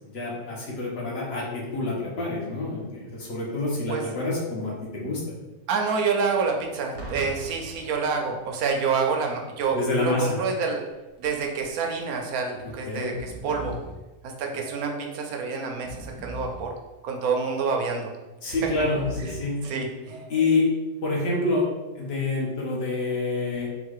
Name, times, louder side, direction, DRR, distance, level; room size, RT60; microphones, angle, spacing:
voice 1, 0.0-5.2 9.7-10.4 12.6-13.1 18.4-19.6 20.3-20.7 21.0-21.7 21.9-23.7, left 3 dB, 45° left, -3 dB, 1.2 m, -27 dB
voice 2, 5.7-10.8 11.2-13.8 14.4-16.7 17.0-18.1 18.6-18.7 19.2-19.3 19.6-20.2, right 5 dB, 70° right, 2 dB, 1.1 m, -27 dB
Boom, 6.9-8.7 9.6-9.8, right 1 dB, 50° right, 1.0 m, -40 dB
Breathing, 10.9-11.3 11.6-11.7 12.5-12.7 13.0-14.0 14.6-15.2 15.7-16.7 17.3-17.9 18.5-19.5 20.0-20.7, left 1 dB, 5° right, 0.4 m, -40 dB
4.0 x 2.5 x 4.7 m, 1.1 s
omnidirectional pair, 1.6 m